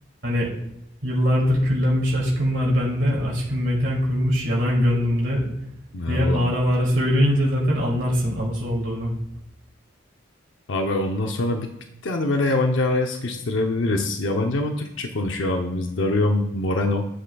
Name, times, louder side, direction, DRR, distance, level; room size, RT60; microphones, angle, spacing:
voice 1, 1.0-5.5 6.1-9.1, equal, 65° right, -4 dB, 2.5 m, -22 dB
voice 2, 5.9-6.4 10.7-11.7 12.0-17.1, left 2 dB, 75° left, 4 dB, 0.7 m, -24 dB
10.0 x 7.7 x 2.3 m, 0.82 s
head